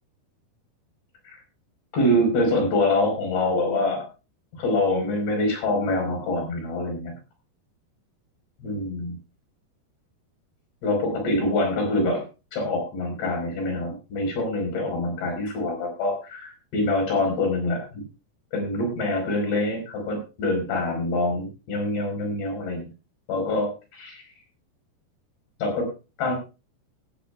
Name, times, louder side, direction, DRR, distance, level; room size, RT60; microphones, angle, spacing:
voice 1, 1.9-4.1 4.6-7.1 8.6-9.2 10.8-12.2 12.5-18.0 18.5-22.9 23.3-24.3 25.6-25.9 26.2-26.3, left 1 dB, 70° left, 2 dB, 6.8 m, -25 dB
18.5 x 12.5 x 2.3 m, 0.32 s
omnidirectional pair, 5.0 m